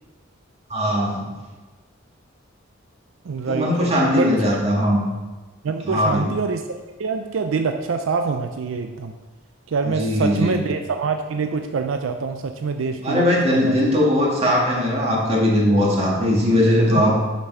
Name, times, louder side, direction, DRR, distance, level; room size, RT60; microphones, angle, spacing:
voice 1, 0.7-1.3 3.5-5.0 5.8-6.3 9.9-10.6 13.0-17.2, left 1 dB, 35° right, -3 dB, 1.8 m, -19 dB
voice 2, 3.2-4.3 5.6-9.1 9.7-13.8 17.0-17.1, right 4 dB, 80° right, 7 dB, 0.4 m, -25 dB
6.8 x 5.2 x 5.5 m, 1.3 s
head